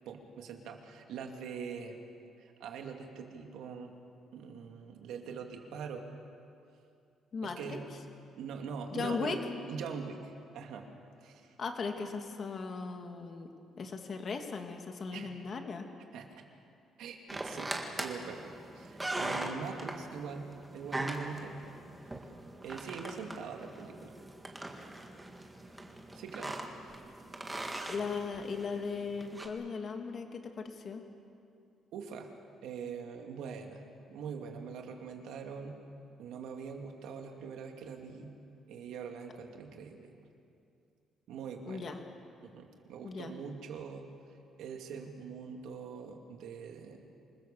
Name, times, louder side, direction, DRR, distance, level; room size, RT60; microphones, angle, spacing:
voice 1, 0.1-2.0 2.4-3.9 4.3-6.1 7.4-7.8 8.4-9.4 9.7-10.2 10.5-10.9 11.2-11.6 15.1-15.3 16.1-16.3 17.0-17.7 18.0-21.6 22.6-24.2 26.1-26.6 31.9-32.3 32.6-33.8 34.1-35.8 36.2-38.3 38.7-40.3 41.3-41.9 42.4-44.1 44.6-47.0, right 6 dB, 85° right, 3 dB, 2.6 m, -43 dB
voice 2, 7.3-7.8 8.9-9.4 11.6-13.5 13.8-15.9 27.9-31.0 41.7-42.0 43.0-43.3, left 5 dB, 35° left, 5 dB, 2.0 m, -37 dB
sound 1, 17.3-29.5, right 1 dB, 10° right, 1.8 m, -41 dB
27.0 x 20.5 x 7.0 m, 2.5 s
cardioid pair, 170°, 0 cm